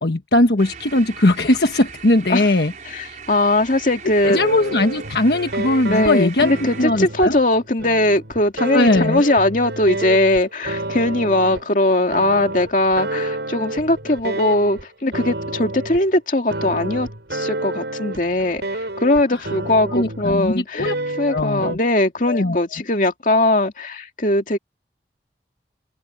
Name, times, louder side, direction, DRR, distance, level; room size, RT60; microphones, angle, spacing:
voice 1, 0.0-2.7 4.3-6.5 6.8-7.4 8.7-9.2 19.3-19.4 19.9-20.9 21.3-21.8 22.3-22.6, left 2 dB, 70° left, 1.4 m, -19 dB
sound 1, 0.6-6.9, right 6 dB, 45° right, 5.9 m, -39 dB
voice 2, 2.9-4.4 5.9-20.9 21.2-24.6, left 1 dB, 45° left, 2.4 m, -20 dB
sound 2, 4.1-11.7 12.1-14.8 15.1-16.0 16.5-20.4 20.8-21.8, right 2 dB, 85° right, 5.3 m, -29 dB
head